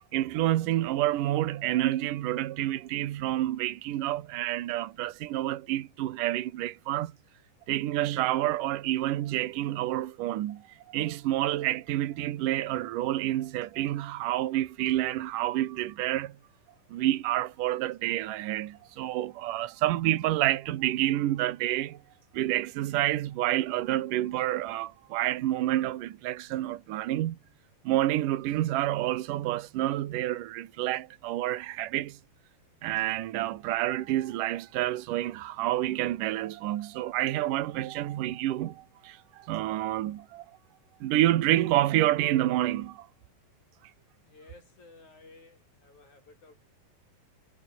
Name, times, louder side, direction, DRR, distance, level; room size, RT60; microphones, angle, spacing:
voice 1, 0.1-7.1 7.7-10.6 10.9-16.4 16.9-22.0 22.3-27.4 27.8-32.2 32.8-40.5 41.0-43.1, right 14 dB, 70° right, 2.7 m, -28 dB
voice 2, 44.2-46.7, left 3 dB, 50° left, 9.2 m, -55 dB
omnidirectional pair, 4.2 m